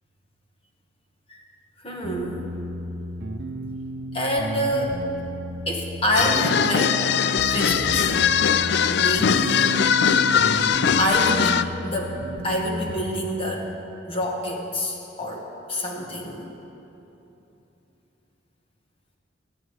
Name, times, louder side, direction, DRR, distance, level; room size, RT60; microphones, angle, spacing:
voice 1, 1.8-2.5 4.1-5.0 5.7-7.0 7.5-8.1 8.9-9.7 11.0-12.2 12.4-13.7 14.1-16.5, equal, 30° left, 0 dB, 1.8 m, -27 dB
sound 1, 2.0-13.4, right 1 dB, 65° right, 0.8 m, -33 dB
sound 2, 6.1-11.6, left 7 dB, 60° left, 0.4 m, -21 dB
23.0 x 9.0 x 4.8 m, 3.0 s
head